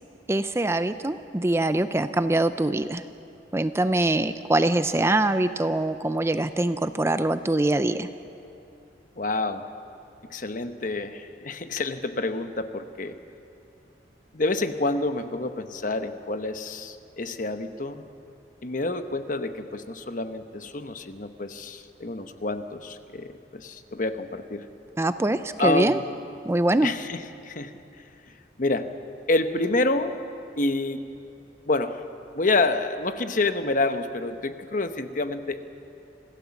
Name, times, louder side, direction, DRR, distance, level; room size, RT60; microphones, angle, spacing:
voice 1, 0.3-3.0 3.5-8.1 25.0-26.0 26.4-26.9, right 2 dB, 15° right, 11 dB, 0.4 m, -23 dB
voice 2, 9.2-9.7 10.3-13.2 14.3-18.1 18.6-24.7 25.6-26.0 26.8-28.0 28.6-28.9 29.3-30.2 30.6-31.0 31.7-32.0 32.3-35.7, left 2 dB, 45° left, 9 dB, 1.0 m, -28 dB
26.0 x 16.0 x 7.2 m, 2.7 s
head